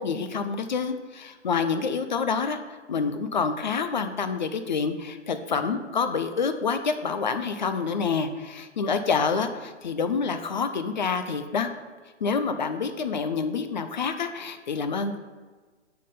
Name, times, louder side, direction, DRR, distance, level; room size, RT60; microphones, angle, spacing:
voice 1, 0.0-11.7 12.2-15.2, left 5 dB, 40° left, 9 dB, 0.4 m, -27 dB
6.2 x 3.8 x 5.4 m, 1.4 s
figure-of-eight pair, 140°, 36 cm